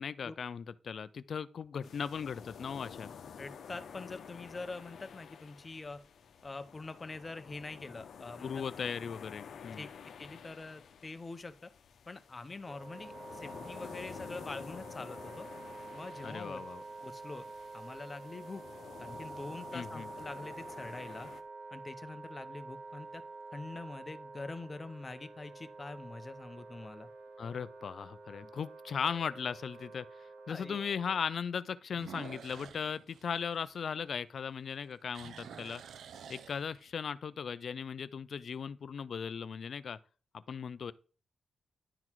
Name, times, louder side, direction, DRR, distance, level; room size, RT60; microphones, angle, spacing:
voice 1, 0.0-3.1 8.4-9.8 16.2-16.8 19.7-20.1 27.4-35.8 36.3-40.0 40.3-40.9, left 6 dB, 60° left, 0.4 m, -38 dB
sound 1, 1.8-21.4, left 7 dB, 80° left, 0.8 m, -50 dB
voice 2, 3.4-6.0 6.4-8.6 9.8-9.9 10.2-11.5 12.1-15.5 15.9-16.6 17.0-17.4 17.7-18.6 19.0-21.3 21.7-23.2 23.5-27.1 28.4-28.5 30.5-30.8, left 3 dB, 30° left, 0.7 m, -44 dB
Wind instrument woodwind instrument, 12.7-31.3, right 3 dB, 70° right, 2.7 m, -48 dB
sound 2, 18.2-18.9 19.6-19.7 24.9-25.4 25.8-25.9 26.5-26.6 26.8-26.9 28.4-28.5 31.9-34.4 34.7-37.1, right 7 dB, 90° right, 0.5 m, -50 dB
11.0 x 3.9 x 4.5 m
cardioid pair, 105°, 0 cm